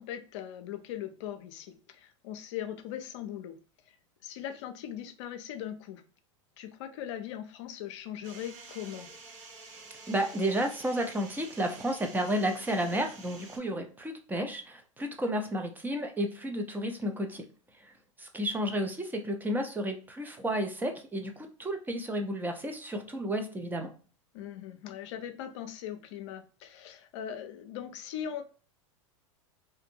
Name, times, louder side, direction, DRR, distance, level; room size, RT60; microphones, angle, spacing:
voice 1, 0.0-3.6 3.9-4.0 4.2-6.0 6.6-9.1 24.3-28.4, left 10 dB, 65° left, 0.5 m, -40 dB
sound 1, 8.2-13.6, right 3 dB, 60° right, 1.1 m, -49 dB
voice 2, 10.1-17.4 17.8-17.9 18.2-23.9, equal, 10° right, 0.5 m, -32 dB
2.5 x 2.5 x 2.7 m
hypercardioid pair, 100°, 17 cm